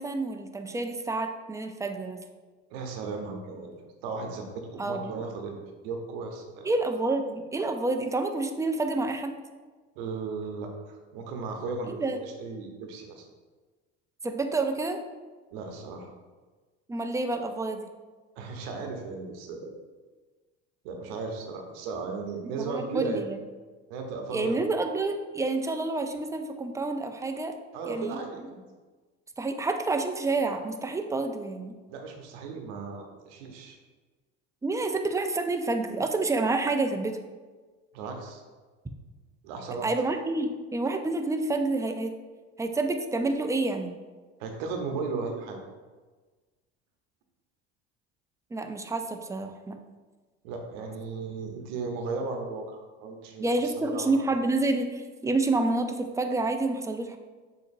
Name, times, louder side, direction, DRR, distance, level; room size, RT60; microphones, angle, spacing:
voice 1, 0.0-2.2 4.8-5.2 6.6-9.4 11.9-12.2 14.2-15.0 16.9-17.9 22.6-23.4 24.3-27.5 27.8-28.2 29.4-31.8 34.6-37.2 39.8-42.1 42.6-43.9 48.5-49.8 53.4-57.2, right 2 dB, 10° right, 6 dB, 0.4 m, -28 dB
voice 2, 2.7-3.7 4.0-5.6 5.8-6.7 10.0-13.3 15.5-16.1 18.4-19.7 20.8-23.2 23.9-24.6 27.7-28.6 31.9-33.8 37.9-38.4 39.4-39.9 44.4-45.6 50.4-53.5 53.8-54.2, right 4 dB, 75° right, 3 dB, 0.8 m, -36 dB
6.9 x 2.8 x 2.6 m, 1.3 s
hypercardioid pair, 80°, 32 cm